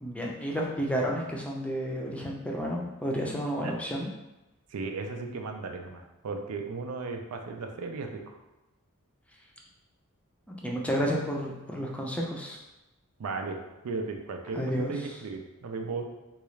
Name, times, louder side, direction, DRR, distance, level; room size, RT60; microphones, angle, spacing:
voice 1, 0.0-4.1 10.6-12.6 14.6-14.9, equal, 5° left, -2 dB, 0.4 m, -31 dB
voice 2, 4.7-8.4 13.2-13.6 13.8-16.1, right 4 dB, 85° right, 4 dB, 0.4 m, -36 dB
3.8 x 2.4 x 3.1 m, 1.0 s
head